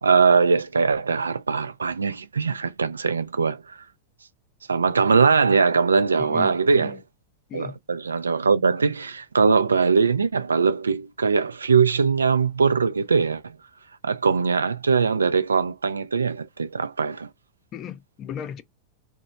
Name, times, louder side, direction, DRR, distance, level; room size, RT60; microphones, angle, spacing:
voice 1, 0.0-3.8 4.7-7.0 7.5-13.6 14.0-17.3, right 5 dB, 75° right, 0.3 m, -21 dB
voice 2, 6.2-7.0 7.5-7.8 17.7-18.6, left 8 dB, 30° left, 0.5 m, -36 dB
2.9 x 2.2 x 3.8 m
figure-of-eight pair, 90°, 0 cm